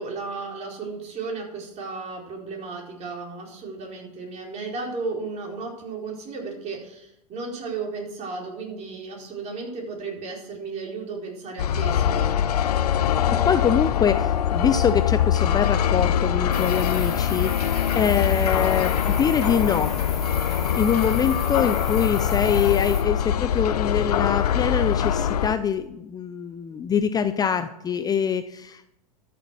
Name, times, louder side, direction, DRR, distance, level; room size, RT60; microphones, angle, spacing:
voice 1, 0.0-12.4, right 4 dB, 35° right, -1 dB, 4.6 m, -34 dB
sound 1, 11.6-25.5, left 9 dB, 75° left, 0.8 m, -23 dB
voice 2, 13.1-19.9 20.5-28.9, left 7 dB, 20° left, 11 dB, 0.6 m, -24 dB
sound 2, 16.5-23.0, left 1 dB, ahead, 3.5 m, -38 dB
13.0 x 6.9 x 6.3 m, 0.82 s
hypercardioid pair, 100°, 20 cm